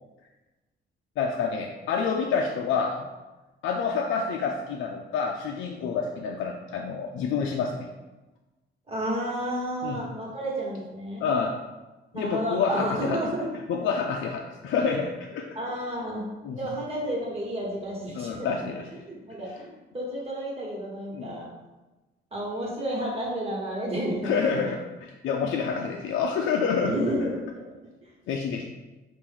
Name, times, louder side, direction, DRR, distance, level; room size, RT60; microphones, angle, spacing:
voice 1, 1.2-3.0 3.6-7.9 9.8-10.0 11.2-11.5 12.1-13.2 13.7-15.5 16.4-16.6 18.1-18.8 21.1-21.4 24.2-26.9 28.3-28.6, left 5 dB, 75° left, 1 dB, 0.5 m, -28 dB
voice 2, 8.9-11.2 12.1-13.5 15.5-18.7 19.1-21.5 22.3-24.7 26.8-27.4 28.0-28.1, right 1 dB, 30° right, -3 dB, 1.5 m, -31 dB
4.5 x 2.6 x 3.6 m, 1.1 s
cardioid pair, 90°, 20 cm